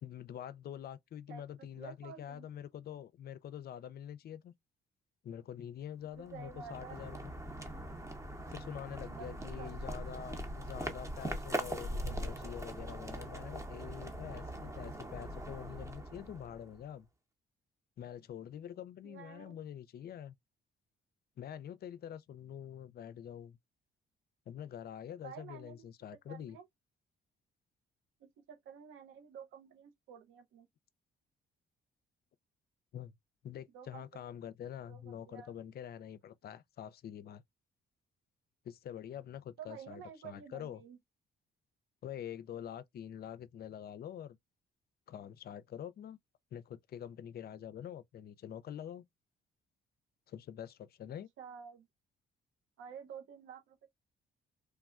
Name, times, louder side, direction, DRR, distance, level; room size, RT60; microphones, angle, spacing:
voice 1, 0.0-4.5 5.2-7.3 8.5-17.1 18.0-20.4 21.4-23.6 24.5-26.6 32.9-33.2 33.4-37.4 38.6-40.8 42.0-44.4 45.1-46.2 46.5-49.0 50.3-51.3, left 10 dB, 50° left, 0.4 m, -46 dB
voice 2, 1.3-2.5 6.2-7.0 9.0-9.9 10.1-10.3 19.0-19.6 25.2-25.9 26.3-26.7 28.2-30.7 33.7-34.2 34.9-35.6 39.6-41.0 51.4-51.9 52.8-53.9, right 7 dB, 85° right, 0.7 m, -51 dB
sound 1, 6.1-16.9, right 1 dB, 15° right, 0.7 m, -41 dB
3.3 x 2.2 x 2.3 m
cardioid pair, 90°, 20 cm